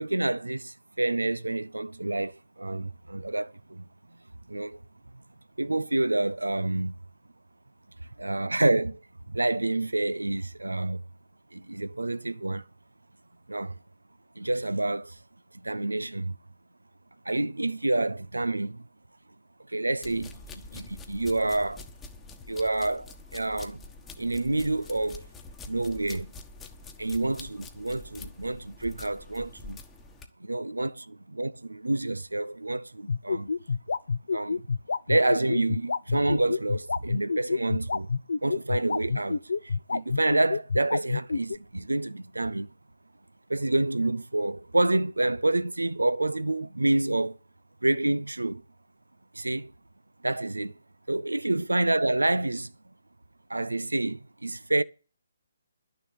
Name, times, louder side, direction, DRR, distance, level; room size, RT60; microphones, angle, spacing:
voice 1, 0.0-3.9 4.5-4.8 5.6-6.9 8.2-9.0 9.3-11.0 11.5-12.6 13.5-13.8 14.4-15.2 15.5-16.4 17.2-18.9 19.7-21.8 22.5-23.8 24.2-25.3 25.7-26.3 27.0-29.8 30.4-33.5 34.3-34.7 35.1-38.1 38.4-42.7 43.5-47.4 47.8-48.6 49.3-49.7 50.2-50.8 51.1-52.7 53.5-54.8, right 2 dB, 85° right, 0.7 m, -28 dB
sound 1, 20.0-30.3, left 3 dB, 10° left, 1.3 m, -46 dB
sound 2, 33.1-41.6, left 5 dB, 65° left, 0.6 m, -27 dB
11.0 x 6.8 x 8.6 m
figure-of-eight pair, 140°, 0 cm